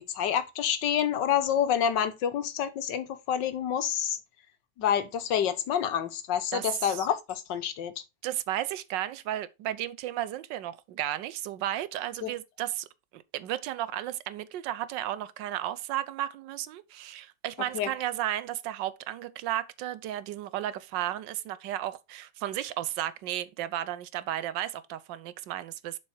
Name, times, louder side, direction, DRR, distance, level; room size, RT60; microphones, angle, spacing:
voice 1, 0.0-4.2 4.8-7.9 12.2-12.3 17.7-17.9, left 9 dB, 80° left, 1.6 m, -28 dB
voice 2, 6.5-7.1 8.2-12.8 13.1-26.0, right 13 dB, 85° right, 1.3 m, -34 dB
7.2 x 4.7 x 4.4 m
omnidirectional pair, 1.9 m